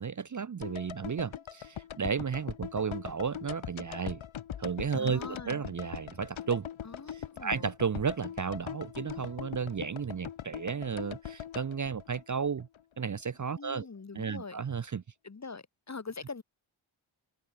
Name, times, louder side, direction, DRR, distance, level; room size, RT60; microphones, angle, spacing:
voice 1, 0.0-4.2 4.6-6.7 7.1-12.7 13.0-13.9 14.1-15.0, right 6 dB, 40° right, 0.6 m, -33 dB
sound 1, 0.6-12.8 13.1-13.2, left 9 dB, 75° left, 0.9 m, -42 dB
voice 2, 5.0-5.6 6.8-7.7 13.5-14.6 15.2-16.4, left 4 dB, 35° left, 1.1 m, -43 dB
open air
cardioid pair, 40°, 49 cm